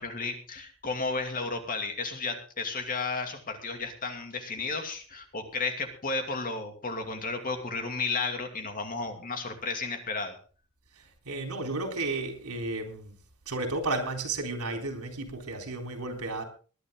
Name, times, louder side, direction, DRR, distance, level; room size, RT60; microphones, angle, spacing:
voice 1, 0.0-10.4, left 4 dB, 40° left, 5 dB, 2.5 m, -33 dB
voice 2, 11.0-13.1 13.5-16.4, right 2 dB, 90° right, 4 dB, 3.8 m, -33 dB
20.0 x 11.0 x 3.8 m, 0.38 s
head